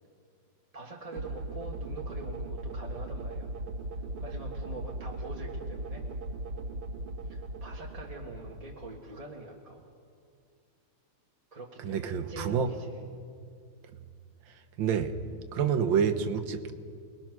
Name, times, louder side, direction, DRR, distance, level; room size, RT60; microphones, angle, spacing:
voice 1, 0.7-3.6 4.2-6.0 7.2-9.9 11.5-13.0, right 2 dB, 20° right, -1 dB, 1.5 m, -44 dB
sound 1, 1.1-9.3, right 1 dB, 85° right, 2.3 m, -38 dB
voice 2, 11.8-12.7 14.8-15.1 15.5-16.7, right 7 dB, 65° right, 8 dB, 1.7 m, -28 dB
28.5 x 20.0 x 6.1 m, 2.3 s
omnidirectional pair, 2.4 m